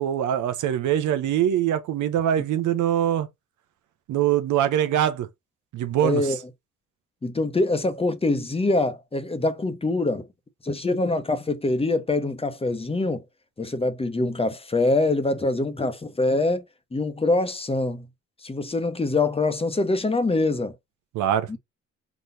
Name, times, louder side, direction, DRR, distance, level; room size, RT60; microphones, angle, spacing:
voice 1, 0.0-3.3 4.1-5.3 5.7-6.2 21.1-21.5, right 10 dB, 80° right, 0.9 m, -23 dB
voice 2, 6.0-6.4 7.2-10.2 10.6-13.2 13.6-16.6 16.9-18.1 18.4-20.7 21.5-21.6, left 2 dB, 20° left, 1.0 m, -24 dB
4.6 x 4.1 x 2.7 m
cardioid pair, 90°, 30 cm